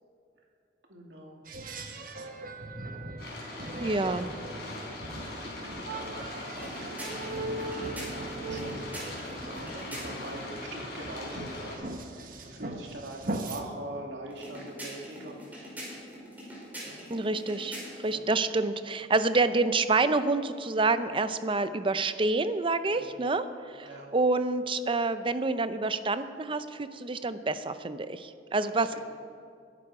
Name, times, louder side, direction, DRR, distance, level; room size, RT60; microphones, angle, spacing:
voice 1, 0.9-1.4 3.6-4.2 5.4-15.6 16.8-17.1 18.1-18.3 22.9-23.2 23.8-24.1 28.7-28.8, right 1 dB, 75° right, 0 dB, 2.6 m, -44 dB
sound 1, 1.5-13.6, right 2 dB, 50° right, 1.3 m, -40 dB
sound 2, 3.2-11.8, left 1 dB, 60° left, 4.4 m, -41 dB
voice 2, 3.8-4.3 17.1-29.0, right 3 dB, 30° right, 12 dB, 0.6 m, -28 dB
sound 3, 6.5-10.4 14.3-18.2, equal, 10° right, 4.9 m, -43 dB
22.0 x 11.0 x 4.9 m, 2.3 s
head